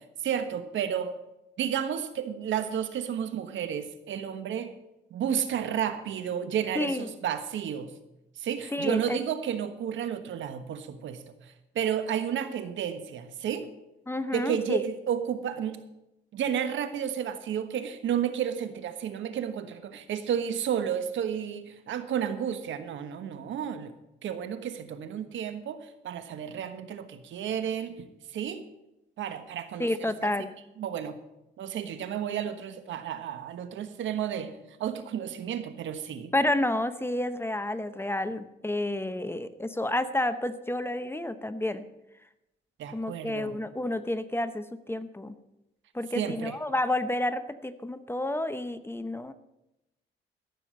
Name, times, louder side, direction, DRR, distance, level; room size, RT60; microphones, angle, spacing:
voice 1, 0.2-1.1 1.6-4.7 5.1-7.9 8.4-13.7 14.3-15.8 16.3-23.9 24.2-28.0 28.3-28.6 29.2-29.9 30.2-30.3 30.8-31.2 31.6-36.3 42.8-43.6 46.1-46.5, right 9 dB, 75° right, 10 dB, 1.3 m, -32 dB
voice 2, 6.7-7.1 8.7-9.2 14.1-14.8 29.8-30.5 36.3-41.8 42.9-45.3 45.9-49.3, left 1 dB, 10° left, 12 dB, 0.8 m, -30 dB
13.5 x 7.1 x 7.7 m, 0.90 s
cardioid pair, 90°, 20 cm